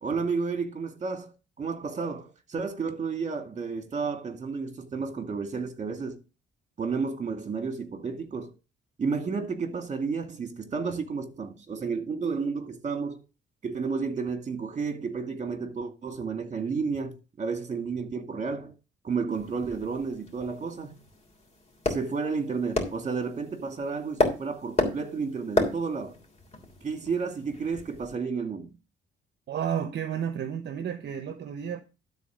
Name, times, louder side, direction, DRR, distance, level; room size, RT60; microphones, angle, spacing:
voice 1, 0.0-6.2 6.8-8.5 9.0-13.2 13.6-18.7 19.0-21.0 21.9-26.1 26.8-28.7, right 5 dB, 35° right, 2.2 m, -31 dB
sound 1, 19.3-28.2, left 2 dB, 30° left, 3.3 m, -33 dB
voice 2, 29.5-31.8, right 8 dB, 60° right, 0.9 m, -31 dB
12.5 x 4.2 x 6.3 m
cardioid pair, 90°, 20 cm